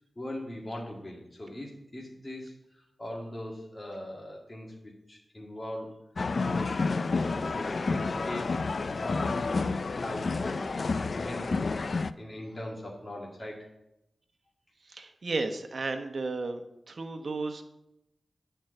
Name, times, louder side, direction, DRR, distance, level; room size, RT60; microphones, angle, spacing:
voice 1, 0.2-5.9 6.4-6.8 7.2-8.6 9.0-10.7 11.1-13.7, left 1 dB, 25° left, -3 dB, 1.9 m, -41 dB
sound 1, 6.2-12.1, left 4 dB, 55° left, 0.4 m, -30 dB
voice 2, 14.9-16.6 16.9-17.6, right 3 dB, 55° right, 6 dB, 1.0 m, -33 dB
10.5 x 4.6 x 7.7 m, 0.86 s
wide cardioid pair, 85°, 0 cm